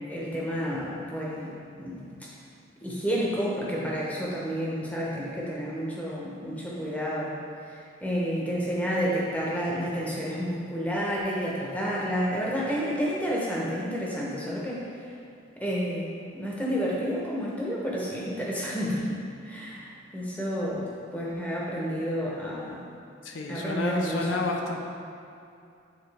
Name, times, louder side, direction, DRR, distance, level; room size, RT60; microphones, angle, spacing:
voice 1, 0.1-1.5 1.8-2.0 2.8-7.4 7.7-14.8 15.6-19.2 19.4-22.8 23.5-24.4, equal, 10° left, -5 dB, 0.8 m, -30 dB
voice 2, 23.2-24.8, left 2 dB, 80° left, 1 dB, 0.6 m, -30 dB
8.6 x 3.8 x 3.3 m, 2.5 s
head